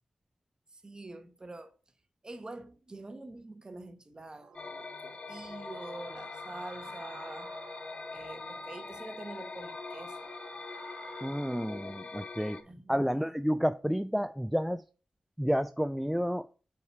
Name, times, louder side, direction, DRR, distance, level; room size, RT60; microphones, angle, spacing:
voice 1, 0.7-1.7 2.2-7.5 8.1-10.3 12.7-13.3, right 2 dB, 30° right, 1.1 m, -46 dB
sound 1, 4.4-11.3, right 5 dB, 55° right, 0.7 m, -53 dB
sound 2, 4.5-12.6, left 4 dB, 45° left, 0.8 m, -43 dB
voice 2, 11.2-12.6 12.9-14.8 15.4-16.5, equal, 5° right, 0.3 m, -30 dB
5.3 x 4.8 x 4.6 m
cardioid pair, 50°, 3 cm